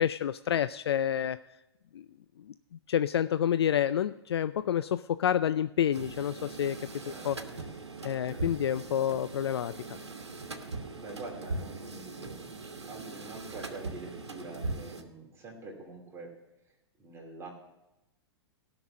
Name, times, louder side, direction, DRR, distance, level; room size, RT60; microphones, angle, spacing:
voice 1, 0.0-1.4 1.9-2.0 2.9-6.8 7.1-7.4 8.0-9.7, left 9 dB, 70° left, 14 dB, 0.4 m, -28 dB
sound 1, 5.9-15.0, right 3 dB, 80° right, 1.2 m, -40 dB
voice 2, 7.0-7.3 8.2-8.5 8.7-8.8 10.7-12.5 12.9-16.3 16.7-17.5, right 2 dB, 20° right, -1 dB, 2.7 m, -46 dB
16.0 x 6.0 x 6.2 m, 0.92 s
figure-of-eight pair, 105°, 14 cm